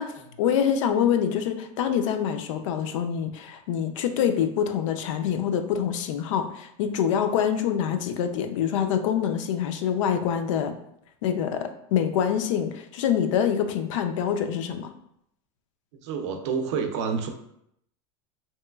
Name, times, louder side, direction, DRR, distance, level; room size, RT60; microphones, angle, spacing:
voice 1, 0.4-10.7 11.2-14.9, left 8 dB, 70° left, 7 dB, 0.4 m, -25 dB
voice 2, 15.9-17.3, right 6 dB, 60° right, 5 dB, 0.5 m, -29 dB
3.0 x 2.9 x 2.2 m, 0.75 s
supercardioid pair, 180°, 17 cm